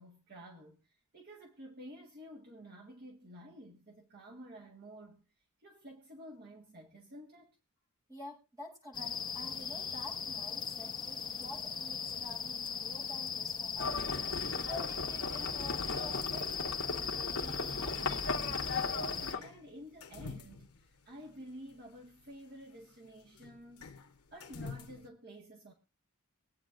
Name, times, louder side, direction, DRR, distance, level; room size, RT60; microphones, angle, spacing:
voice 1, 0.0-7.5 18.8-23.9 24.3-25.7, equal, 45° right, 1.7 m, -51 dB
voice 2, 8.1-14.1 14.7-18.0, left 2 dB, 15° right, 7.5 m, -49 dB
sound 1, 8.9-19.3, left 6 dB, 20° left, 1.0 m, -38 dB
sound 2, 12.1-25.1, left 4 dB, 80° left, 1.1 m, -54 dB
Livestock farm animals working animals, 13.8-19.4, left 3 dB, 60° left, 1.5 m, -37 dB
23.5 x 9.1 x 2.5 m
head